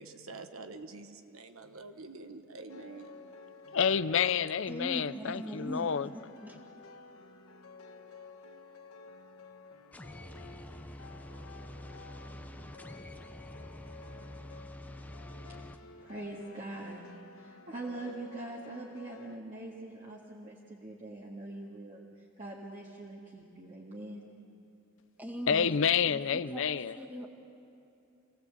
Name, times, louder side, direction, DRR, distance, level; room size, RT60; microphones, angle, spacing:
voice 1, 0.0-3.3 3.7-3.8, right 3 dB, 80° right, 8 dB, 1.1 m, -47 dB
sound 1, 2.7-19.4, left 4 dB, 90° left, 1.3 m, -53 dB
voice 2, 3.7-6.1 25.5-27.0, left 7 dB, 65° left, 16 dB, 0.5 m, -28 dB
voice 3, 4.7-5.9 6.1-6.6 25.2-25.8 26.1-27.3, equal, 10° right, 0 dB, 2.1 m, -40 dB
sound 2, 9.9-15.8, left 1 dB, 10° left, 0.8 m, -47 dB
voice 4, 14.9-24.2, right 2 dB, 35° right, -4 dB, 1.9 m, -44 dB
27.0 x 17.5 x 8.0 m, 2.7 s
head